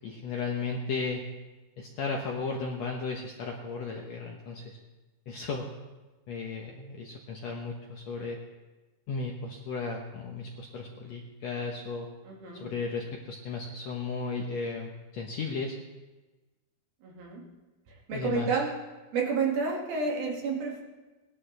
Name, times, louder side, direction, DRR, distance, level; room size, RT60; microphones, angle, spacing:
voice 1, 0.0-1.2 1.8-4.8 5.3-5.7 6.3-8.4 9.1-12.1 12.5-15.8 18.1-18.6, left 4 dB, 70° left, 0 dB, 1.7 m, -35 dB
voice 2, 12.3-12.7 17.0-17.5 18.1-18.8 19.1-20.8, right 4 dB, 75° right, -2 dB, 3.9 m, -30 dB
19.5 x 11.5 x 3.3 m, 1.2 s
omnidirectional pair, 4.3 m